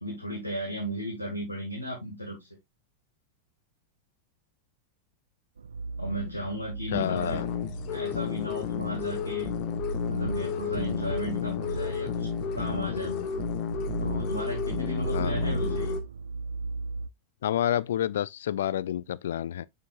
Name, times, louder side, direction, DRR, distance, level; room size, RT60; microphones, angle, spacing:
voice 1, 0.0-2.5 6.0-7.4 7.9-9.5 10.1-12.3 12.5-13.3 14.0-16.0, equal, 85° left, 2.0 m, -35 dB
sound 1, 5.6-17.1, right 3 dB, 70° right, 0.3 m, -35 dB
voice 2, 6.9-7.5 15.1-15.8 17.4-19.7, left 11 dB, 60° left, 0.4 m, -29 dB
sound 2, 6.9-16.0, left 10 dB, 45° left, 1.1 m, -32 dB
6.8 x 6.6 x 2.4 m
figure-of-eight pair, 90°, 0 cm